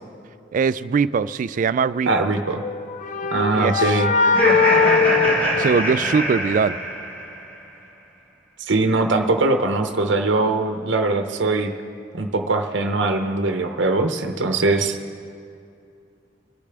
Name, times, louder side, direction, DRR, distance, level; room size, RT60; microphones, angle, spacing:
voice 1, 0.5-2.3 3.5-4.0 5.6-6.8, right 5 dB, 45° right, 16 dB, 0.3 m, -21 dB
voice 2, 2.1-2.6 3.3-4.1 8.7-11.7 12.1-15.0, right 2 dB, 75° right, 5 dB, 0.8 m, -21 dB
sound 1, 2.5-6.4, left 5 dB, 45° left, 0.5 m, -21 dB
Laughter, 4.2-7.4, right 1 dB, 10° left, 2.4 m, -23 dB
23.5 x 8.4 x 3.4 m, 2.5 s
head